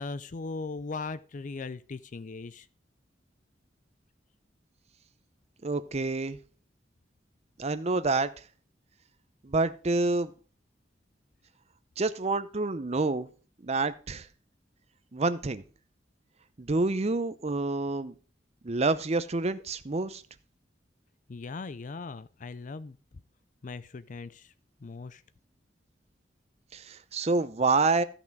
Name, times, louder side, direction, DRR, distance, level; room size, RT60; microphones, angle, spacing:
voice 1, 0.0-2.7 21.3-23.0 23.6-24.5 24.8-25.2, left 3 dB, 45° left, 16 dB, 0.5 m, -38 dB
voice 2, 5.6-6.4 7.6-8.3 9.4-10.3 12.0-13.3 13.6-14.3 15.1-15.6 16.6-18.1 18.6-20.2 26.7-28.0, right 3 dB, 35° right, 13 dB, 0.7 m, -28 dB
13.0 x 6.0 x 4.6 m, 0.37 s
head